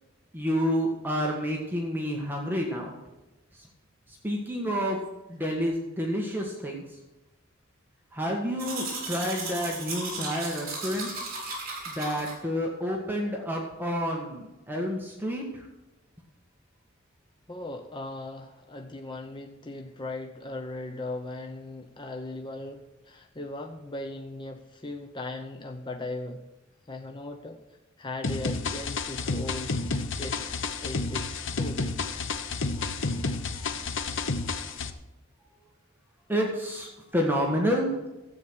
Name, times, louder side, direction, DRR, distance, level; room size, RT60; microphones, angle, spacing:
voice 1, 0.3-2.9 3.5-3.7 4.1-5.0 5.3-7.0 8.1-11.1 11.8-15.7 36.3-38.0, equal, 10° right, -1 dB, 1.6 m, -29 dB
Domestic sounds home sounds, 8.6-12.3, right 3 dB, 50° right, 5.0 m, -35 dB
voice 2, 17.5-26.4 26.9-27.6 28.0-29.7 30.2-30.5 30.8-31.9, left 2 dB, 25° left, 4 dB, 0.8 m, -38 dB
sound 1, 28.2-34.9, left 3 dB, 70° left, 1.0 m, -31 dB
13.0 x 8.4 x 6.2 m, 1.0 s
head